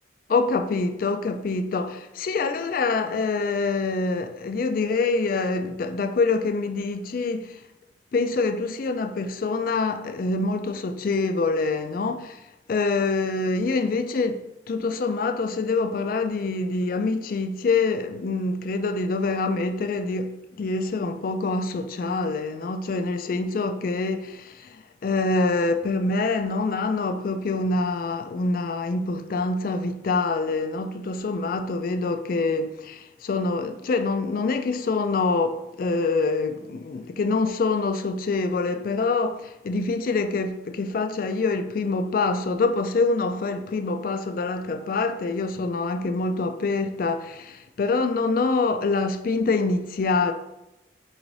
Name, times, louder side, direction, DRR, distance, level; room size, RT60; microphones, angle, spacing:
voice 1, 0.3-7.6 8.1-12.4 12.7-50.3, left 3 dB, 45° left, 0.3 m, -25 dB
3.9 x 2.6 x 4.6 m
head